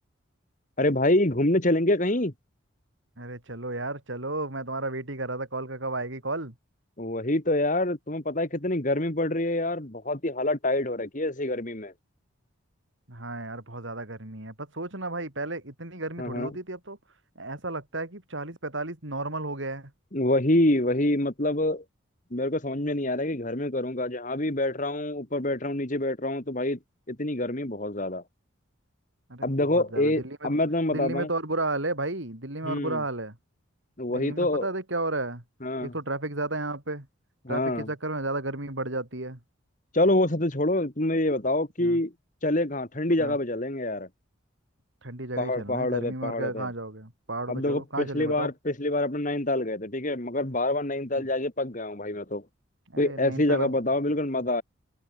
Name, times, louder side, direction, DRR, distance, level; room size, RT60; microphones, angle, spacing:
voice 1, 0.8-2.3 7.0-11.9 16.2-16.5 20.1-21.8 22.3-26.8 27.1-28.2 29.4-31.3 32.6-33.0 34.0-34.7 35.6-35.9 37.4-37.9 39.9-42.1 42.4-44.1 45.4-46.7 47.5-52.4 53.0-54.6, left 1 dB, 40° left, 2.2 m, -26 dB
voice 2, 3.2-6.6 13.1-17.0 17.4-19.9 29.3-29.5 29.7-30.5 30.9-33.4 34.1-35.4 35.8-37.1 37.5-39.4 41.8-42.0 43.2-43.4 45.0-48.5 51.2-51.3 52.9-53.7, right 2 dB, 65° right, 3.5 m, -33 dB
head